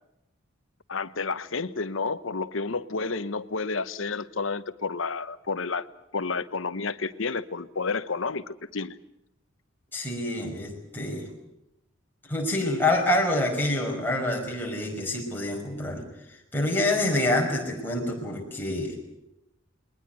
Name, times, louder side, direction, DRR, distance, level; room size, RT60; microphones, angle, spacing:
voice 1, 0.9-5.9 6.1-9.0, left 4 dB, 70° left, 14 dB, 1.0 m, -30 dB
voice 2, 9.9-11.3 12.3-16.0 16.5-18.9, left 1 dB, 10° left, 0 dB, 5.3 m, -27 dB
21.0 x 20.0 x 9.3 m, 0.88 s
head